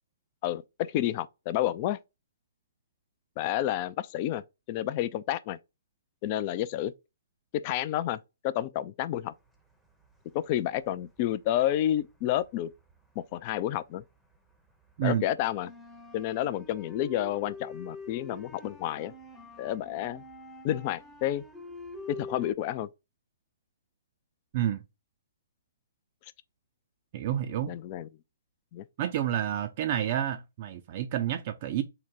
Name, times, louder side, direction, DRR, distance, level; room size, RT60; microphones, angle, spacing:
voice 1, 0.4-2.0 3.4-4.4 4.7-5.6 6.2-6.9 7.5-8.2 8.4-9.3 10.3-12.7 13.2-14.0 15.0-15.7 16.1-19.1 19.6-20.2 20.6-21.4 22.1-22.9 27.7-28.1 28.7-28.8, left 12 dB, 35° left, 0.3 m, -30 dB
sound 1, 9.8-10.8 11.1-14.0 14.3-22.5, left 2 dB, ahead, 0.7 m, -46 dB
voice 2, 27.1-27.7 29.0-31.8, right 10 dB, 45° right, 0.4 m, -29 dB
3.8 x 2.1 x 4.2 m
hypercardioid pair, 130°, 0 cm